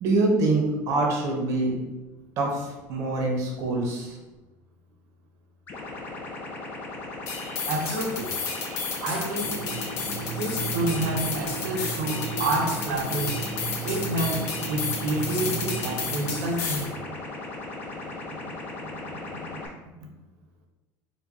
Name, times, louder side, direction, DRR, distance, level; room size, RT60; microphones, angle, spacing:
voice 1, 0.0-1.7 2.4-4.1, right 2 dB, 40° right, -1 dB, 0.7 m, -25 dB
sound 1, 5.7-19.7, left 2 dB, 25° left, 0.5 m, -37 dB
sound 2, 7.3-16.9, left 5 dB, 85° left, 0.8 m, -33 dB
voice 2, 7.7-8.3 9.0-9.6 10.4-13.4 13.8-17.0, right 2 dB, 85° right, 2 dB, 0.8 m, -29 dB
dark-ambient-atmosphere-low-end, 9.4-16.3, right 4 dB, 60° left, 1.1 m, -35 dB
4.0 x 2.2 x 3.5 m, 1.1 s
cardioid pair, 180°, 8 cm